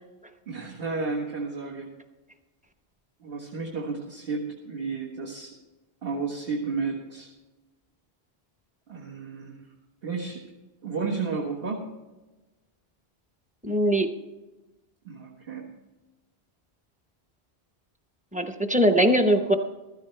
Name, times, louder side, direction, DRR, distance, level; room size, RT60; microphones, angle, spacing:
voice 1, 0.5-1.9 3.2-5.5 6.0-7.3 8.9-9.6 10.0-10.4 10.8-11.9 15.1-15.7, right 4 dB, 65° right, -5 dB, 1.8 m, -32 dB
voice 2, 13.6-14.1 18.3-19.5, equal, 10° right, 6 dB, 0.8 m, -21 dB
15.0 x 13.0 x 3.3 m, 1.1 s
omnidirectional pair, 1.1 m